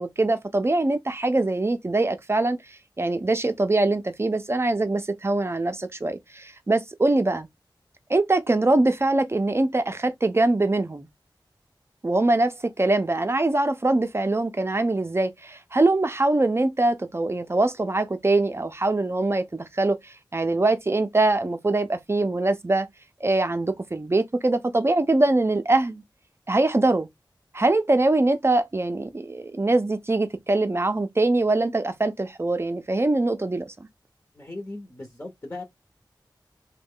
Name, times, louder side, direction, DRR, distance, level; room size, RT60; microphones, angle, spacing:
voice 1, 0.0-2.6 3.0-7.5 8.1-11.1 12.0-22.9 23.2-26.0 26.5-27.1 27.5-33.7, right 2 dB, 30° right, 0.5 m, -23 dB
voice 2, 34.3-35.6, left 2 dB, 30° left, 0.9 m, -37 dB
3.1 x 2.2 x 3.6 m
wide cardioid pair, 80°, 8 cm